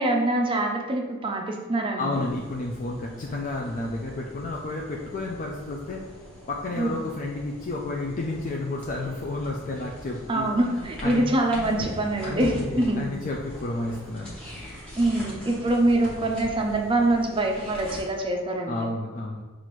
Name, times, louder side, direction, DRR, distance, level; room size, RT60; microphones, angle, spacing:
voice 1, 0.0-2.2 6.8-7.0 10.3-13.1 15.0-18.8, right 1 dB, 25° right, 2 dB, 0.5 m, -24 dB
voice 2, 2.0-6.0 6.5-11.2 11.6-11.9 12.2-14.8 15.4-15.5 18.7-19.4, left 2 dB, 40° left, -1 dB, 0.4 m, -31 dB
sound 1, 2.1-18.0, equal, 5° left, 1.0 m, -42 dB
5.7 x 2.5 x 3.1 m, 1.3 s
head